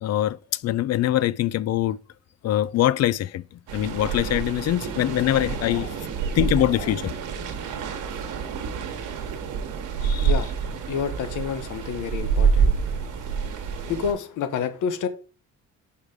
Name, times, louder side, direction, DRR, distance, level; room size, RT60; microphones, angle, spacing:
voice 1, 0.0-2.0 2.4-3.4 3.7-6.0 6.3-7.1 10.0-10.3, left 13 dB, 60° left, 0.4 m, -23 dB
sound 1, 3.7-14.1, right 6 dB, 90° right, 1.1 m, -27 dB
voice 2, 10.8-15.1, left 7 dB, 80° left, 1.0 m, -30 dB
5.2 x 4.8 x 4.9 m
cardioid pair, 90°, 30 cm